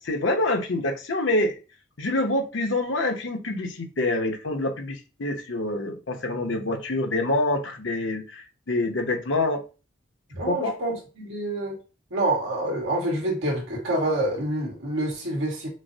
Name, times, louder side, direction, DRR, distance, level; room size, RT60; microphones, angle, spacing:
voice 1, 0.0-1.6 2.0-9.6 10.5-10.8, left 2 dB, 70° left, 3 dB, 0.8 m, -26 dB
voice 2, 10.3-11.8 12.1-15.7, right 1 dB, 85° right, -2 dB, 1.8 m, -27 dB
6.2 x 2.1 x 2.7 m, 0.32 s
head